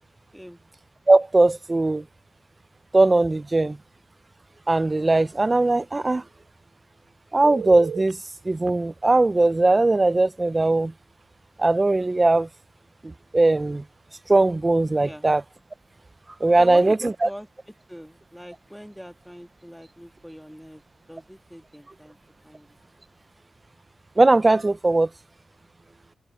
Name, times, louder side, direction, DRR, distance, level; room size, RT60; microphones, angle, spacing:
voice 1, 1.1-2.0 2.9-3.8 4.7-6.2 7.3-8.2 8.4-10.9 11.6-12.5 13.0-13.8 14.3-15.4 16.4-17.3 24.2-25.1, right 2 dB, 20° right, 0.5 m, -19 dB
Telephone, 7.4-8.1 8.7-8.8 10.5-10.7 11.1-11.2 16.5-17.4 24.5-24.7, right 7 dB, 80° right, 4.4 m, -36 dB
voice 2, 15.0-15.3 16.6-17.5 17.9-20.8 21.1-22.2 22.4-22.7, equal, ahead, 2.0 m, -41 dB
wide cardioid pair, 120°, 0 cm